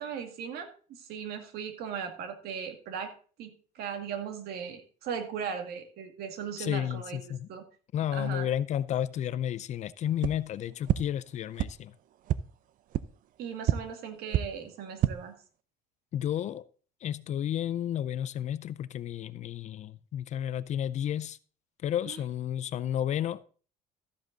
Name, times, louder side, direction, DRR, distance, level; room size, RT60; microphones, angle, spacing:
voice 1, 0.0-3.1 3.4-7.2 7.5-7.6 8.1-8.5 13.4-15.4 22.1-22.2, right 7 dB, 70° right, 2.2 m, -38 dB
voice 2, 6.6-7.5 7.9-11.9 16.1-16.6 17.0-21.4 21.8-23.4, left 10 dB, 45° left, 0.5 m, -32 dB
sound 1, 10.2-10.3 10.9-11.0 11.6-11.7 12.2-12.4 12.9-13.0 13.6-13.7 14.3-14.4 14.9-15.1, right 13 dB, 55° right, 0.6 m, -25 dB
13.5 x 7.8 x 4.0 m
cardioid pair, 145°, 17 cm